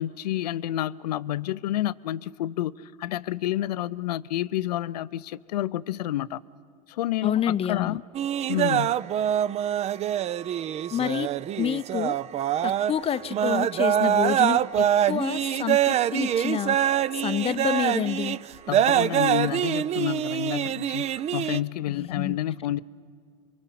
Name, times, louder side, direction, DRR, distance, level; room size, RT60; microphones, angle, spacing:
voice 1, 0.0-6.4 6.9-8.0 8.5-9.0 18.7-22.8, left 13 dB, 80° left, 0.6 m, -29 dB
voice 2, 7.2-8.0 10.9-11.3 11.6-12.2 12.6-16.8 17.1-18.4 21.9-22.4, left 10 dB, 30° left, 0.6 m, -28 dB
sound 1, 8.1-21.6, right 10 dB, 30° right, 0.5 m, -25 dB
27.0 x 23.5 x 5.8 m
hypercardioid pair, 95°, 20 cm